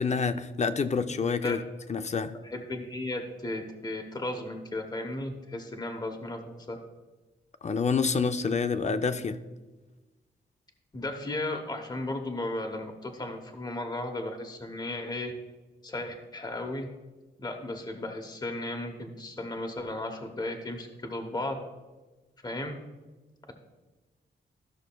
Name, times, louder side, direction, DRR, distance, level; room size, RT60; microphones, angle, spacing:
voice 1, 0.0-1.6 1.9-2.4 7.6-9.4, left 5 dB, 35° left, 10 dB, 0.4 m, -27 dB
voice 2, 2.3-6.8 10.9-15.3 15.8-16.9 17.4-21.6 22.4-22.8, left 2 dB, 20° left, 3 dB, 0.9 m, -35 dB
13.5 x 6.3 x 2.3 m, 1.2 s
wide cardioid pair, 125°, 19 cm